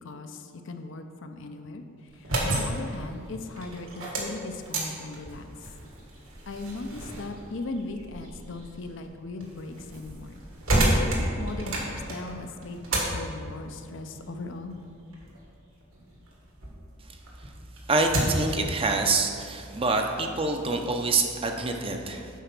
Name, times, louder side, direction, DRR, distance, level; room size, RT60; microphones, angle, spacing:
voice 1, 0.0-1.8 2.1-5.5 6.5-10.4 11.0-14.8, left 2 dB, 60° left, 6 dB, 0.6 m, -38 dB
sound 1, 2.1-16.8 17.2-18.6, right 1 dB, 70° right, 1.7 m, -32 dB
voice 2, 17.9-22.3, right 3 dB, 25° right, 4 dB, 0.6 m, -26 dB
8.3 x 4.9 x 5.9 m, 2.4 s
head